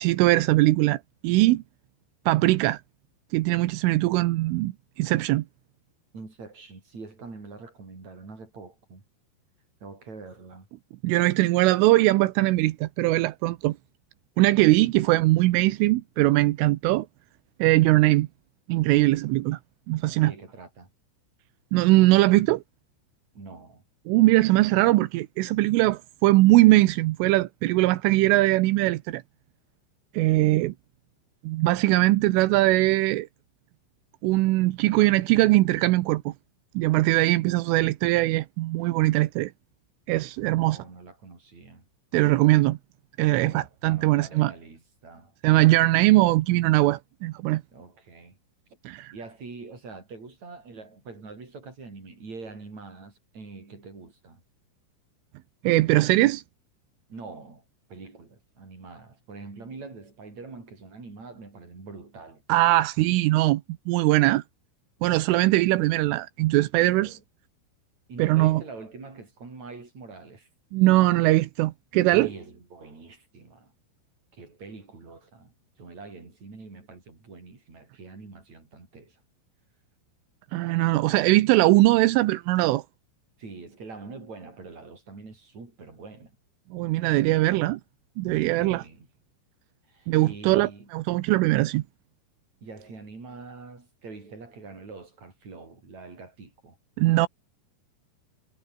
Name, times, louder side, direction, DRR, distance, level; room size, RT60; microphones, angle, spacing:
voice 1, 0.0-1.6 2.3-2.8 3.3-5.5 11.0-13.8 14.4-17.1 17.6-18.3 18.7-19.6 19.9-20.3 21.7-22.6 24.1-29.2 30.2-30.7 31.4-33.3 34.2-36.3 36.8-39.5 40.1-40.8 42.1-42.8 43.2-44.5 45.4-47.6 48.9-49.1 55.6-56.4 62.5-63.6 63.9-64.4 65.0-67.1 68.2-68.6 70.7-72.3 80.5-82.8 86.7-87.8 88.2-88.8 90.1-91.8 97.0-97.3, right 18 dB, 85° right, 3.4 m, -21 dB
voice 2, 6.1-9.0 9.8-10.7 20.2-20.9 23.3-23.8 40.4-41.8 43.3-45.3 47.7-48.4 49.1-54.4 57.1-57.6 57.9-62.4 67.0-67.2 68.1-70.5 72.1-73.7 74.3-79.2 83.4-86.4 88.6-89.1 89.9-90.9 92.6-96.8, right 4 dB, 35° right, 8.0 m, -44 dB
omnidirectional pair, 5.9 m